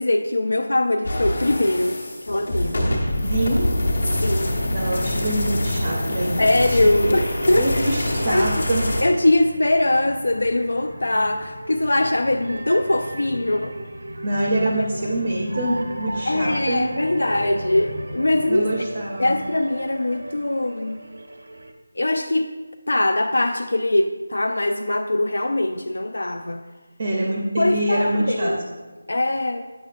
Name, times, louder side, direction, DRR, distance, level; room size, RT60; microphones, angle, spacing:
voice 1, 0.0-2.0 2.3-2.9 4.2-4.6 6.4-7.9 8.3-8.6 9.0-13.7 15.0-15.2 16.3-18.7 19.2-21.0 22.0-22.6 22.9-26.6 27.6-28.6 29.1-29.6, left 1 dB, 80° left, 5 dB, 0.3 m, -22 dB
sound 1, 1.0-9.0, left 1 dB, 60° left, 1.2 m, -25 dB
voice 2, 3.2-3.7 4.7-6.4 6.7-7.0 7.5-8.9 14.2-16.9 18.5-19.4 27.0-28.5, right 1 dB, 25° right, -2 dB, 0.5 m, -25 dB
sound 2, 7.0-21.7, right 1 dB, 80° right, 0.7 m, -37 dB
sound 3, 7.4-20.5 20.8-20.9, left 1 dB, 35° left, 0.9 m, -40 dB
7.0 x 6.0 x 2.4 m, 1.3 s
figure-of-eight pair, 180°, 0 cm